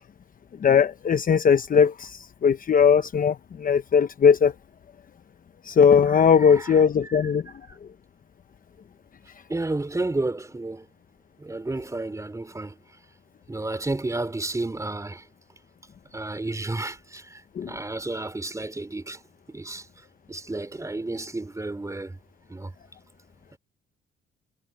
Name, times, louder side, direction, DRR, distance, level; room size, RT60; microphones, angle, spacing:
voice 1, 0.6-2.1 2.4-4.5 5.7-7.4 17.6-17.7, left 7 dB, 45° left, 0.9 m, -19 dB
voice 2, 6.4-6.8 7.7-7.8 9.5-10.9 11.4-12.8 13.5-15.2 16.1-17.4 17.7-19.2 19.5-19.8 20.3-22.2 22.5-22.7, right 2 dB, 15° right, 3.9 m, -31 dB
cardioid pair, 90°, 20 cm